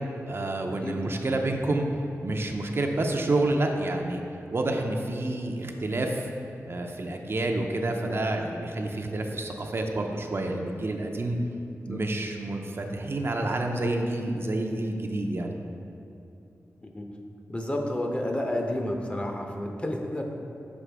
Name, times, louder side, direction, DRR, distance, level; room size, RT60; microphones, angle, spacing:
voice 1, 0.3-1.9 2.2-4.2 4.5-6.3 6.7-11.4 11.9-15.5, right 2 dB, 50° right, 3 dB, 0.5 m, -28 dB
voice 2, 0.8-1.1 11.9-12.0 16.8-17.1 17.5-20.2, left 1 dB, 20° left, 2 dB, 0.6 m, -30 dB
6.1 x 4.7 x 3.4 m, 2.8 s
cardioid pair, 65°, 5 cm